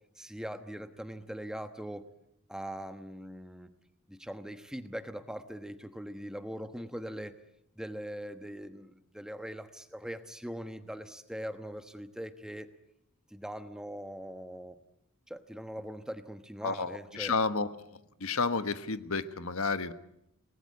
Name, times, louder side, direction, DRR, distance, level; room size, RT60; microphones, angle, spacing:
voice 1, 0.2-2.1 2.5-3.7 4.1-7.3 7.8-12.7 13.3-14.8 15.3-17.3, equal, 5° right, 9 dB, 1.1 m, -41 dB
voice 2, 16.6-17.7 18.2-19.9, left 4 dB, 70° left, 12 dB, 1.4 m, -31 dB
28.5 x 19.0 x 9.6 m, 0.80 s
head